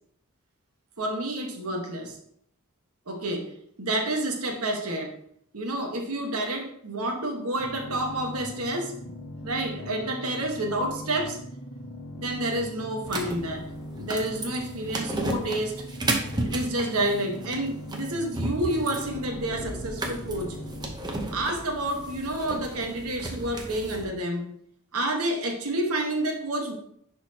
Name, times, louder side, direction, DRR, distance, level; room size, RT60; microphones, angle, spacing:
voice 1, 1.0-2.0 3.1-3.5 3.8-5.1 5.5-8.9 9.4-11.4 12.2-13.6 14.0-15.7 16.4-20.6 21.3-24.4 24.9-26.7, right 1 dB, 85° right, 2 dB, 1.3 m, -29 dB
sound 1, 7.6-20.9, left 1 dB, 55° left, 1.0 m, -40 dB
sound 2, 13.0-24.0, right 2 dB, 20° right, 0.9 m, -34 dB
10.5 x 4.3 x 2.8 m, 0.68 s
head